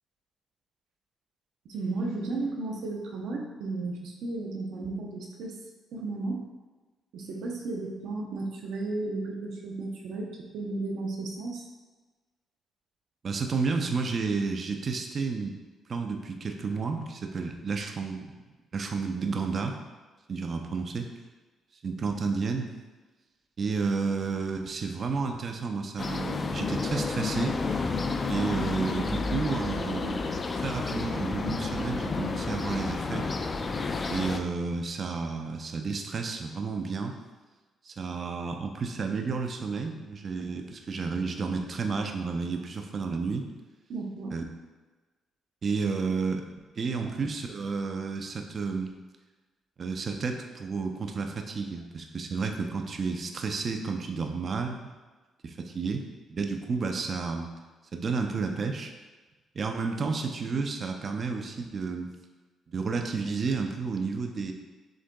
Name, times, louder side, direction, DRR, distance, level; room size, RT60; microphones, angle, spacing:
voice 1, 1.6-5.5 5.9-6.4 7.1-11.6 43.9-44.3 47.0-47.1, right 3 dB, 80° right, 1 dB, 0.7 m, -34 dB
voice 2, 13.2-15.5 15.9-18.3 18.7-19.8 20.3-21.1 21.8-22.7 23.6-27.6 28.3-30.2 30.6-33.3 34.1-37.1 37.8-43.5 44.3-44.4 45.6-46.4 46.7-48.9 49.8-54.8 55.4-56.0 56.3-57.5 57.9-58.9 59.6-62.1 62.7-64.5, right 4 dB, 45° right, 4 dB, 0.5 m, -31 dB
sound 1, 26.0-34.4, left 4 dB, 35° left, 0.3 m, -31 dB
6.3 x 3.7 x 2.3 m, 1.2 s
cardioid pair, 90°, 0 cm